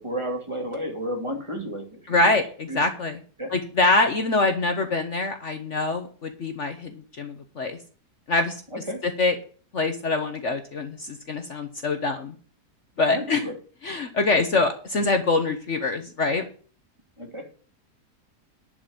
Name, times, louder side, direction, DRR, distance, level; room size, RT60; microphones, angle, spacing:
voice 1, 0.0-2.4 2.7-2.8 3.4-3.5 8.7-9.0 13.1-13.6 17.2-17.5, equal, 15° right, 2 dB, 2.5 m, -32 dB
voice 2, 2.1-3.2 3.5-7.8 8.3-8.6 9.0-9.4 9.7-12.3 13.0-13.4 13.8-16.4, left 3 dB, 50° left, 6 dB, 1.4 m, -24 dB
11.0 x 5.3 x 8.4 m, 0.41 s
omnidirectional pair, 1.8 m